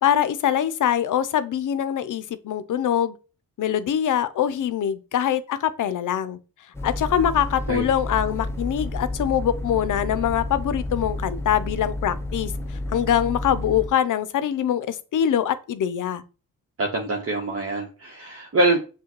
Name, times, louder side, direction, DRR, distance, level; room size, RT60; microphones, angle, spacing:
voice 1, 0.0-3.1 3.6-6.4 6.8-12.5 12.9-16.2, left 10 dB, 65° left, 0.5 m, -23 dB
sound 1, 6.7-13.9, left 1 dB, 10° left, 0.6 m, -31 dB
voice 2, 16.8-18.8, right 2 dB, 45° right, 1.0 m, -24 dB
6.2 x 2.2 x 3.0 m
cardioid pair, 60°, 34 cm